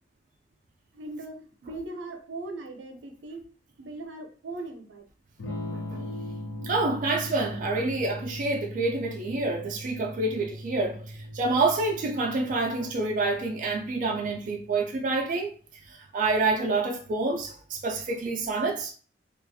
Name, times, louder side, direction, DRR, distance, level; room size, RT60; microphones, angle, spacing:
voice 1, 0.9-3.4 3.8-5.1, right 2 dB, 90° right, 0.6 m, -39 dB
Electric guitar / Strum, 5.4-15.2, left 1 dB, 75° left, 0.5 m, -40 dB
voice 2, 6.6-15.5 15.9-18.9, right 3 dB, 45° right, 0.4 m, -28 dB
2.4 x 2.3 x 2.6 m
head